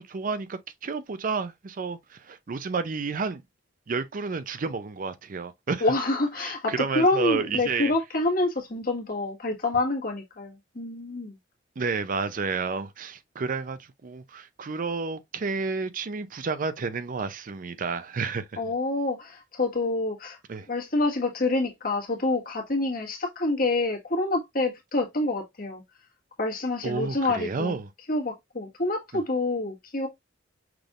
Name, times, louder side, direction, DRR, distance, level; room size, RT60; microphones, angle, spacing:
voice 1, 0.0-3.4 3.9-5.8 6.4-7.9 11.8-18.6 20.5-20.7 26.8-27.9 29.1-29.2, right 4 dB, 45° right, 0.5 m, -31 dB
voice 2, 5.8-11.3 18.6-20.4 20.7-25.8 26.4-27.8 28.1-30.1, left 2 dB, 50° left, 1.6 m, -27 dB
5.9 x 3.4 x 2.4 m
head